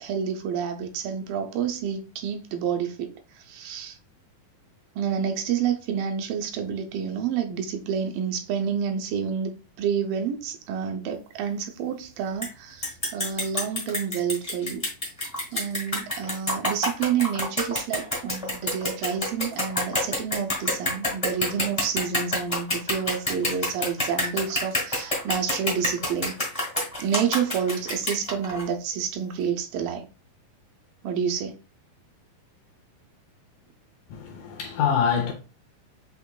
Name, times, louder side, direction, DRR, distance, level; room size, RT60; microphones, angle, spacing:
voice 1, 0.0-4.0 5.0-14.8 15.5-26.3 27.0-30.1 31.0-31.6, right 7 dB, 80° right, 2.2 m, -29 dB
sound 1, 12.4-12.5 12.8-28.7, left 1 dB, 25° left, 0.7 m, -27 dB
voice 2, 34.1-35.3, left 7 dB, 75° left, 1.9 m, -25 dB
8.0 x 2.9 x 2.3 m
omnidirectional pair, 4.1 m